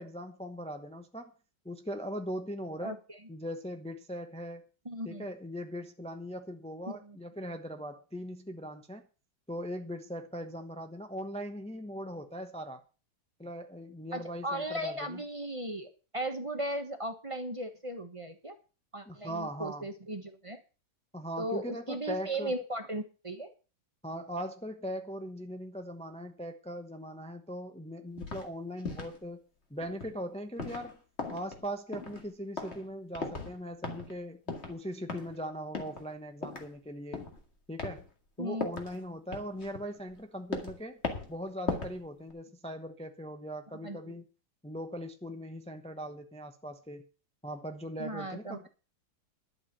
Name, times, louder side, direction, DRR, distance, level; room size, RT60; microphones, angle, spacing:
voice 1, 0.0-1.3 1.6-3.0 3.3-4.6 5.0-9.0 9.5-12.8 13.4-15.2 19.1-19.9 21.1-22.5 24.0-29.4 29.7-31.0 31.3-37.3 37.7-38.1 38.4-41.0 41.3-44.3 44.6-47.0 47.4-48.7, equal, 10° left, 6 dB, 0.4 m, -40 dB
voice 2, 4.8-5.2 6.9-7.2 14.1-18.5 18.9-20.6 21.4-23.5 38.4-38.7 43.8-44.0 48.0-48.7, right 1 dB, 20° right, 7 dB, 0.9 m, -37 dB
sound 1, 28.2-28.5 28.8-29.2 29.8-30.2 30.6-30.9 31.2-31.7 31.9-32.3 32.6-32.9 33.1-33.6 33.8-34.2 34.5-34.8 35.1-35.4 35.7-36.1 36.4-36.7 37.1-37.4 37.8-38.0 38.6-39.0 39.3-40.2 40.5-40.8 41.0-41.4 41.6-42.0 42.3-42.4, left 3 dB, 30° left, 2.4 m, -38 dB
11.5 x 7.4 x 7.3 m, 0.34 s
omnidirectional pair, 2.2 m